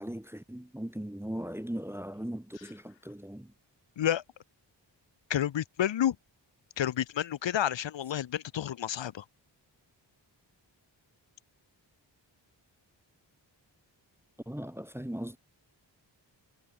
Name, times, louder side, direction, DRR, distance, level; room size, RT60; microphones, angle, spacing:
voice 1, 0.0-3.5 14.5-15.4, right 1 dB, 5° right, 0.7 m, -38 dB
voice 2, 5.3-6.2 6.8-9.2, left 10 dB, 75° left, 0.8 m, -30 dB
wide cardioid pair, 95°, 45 cm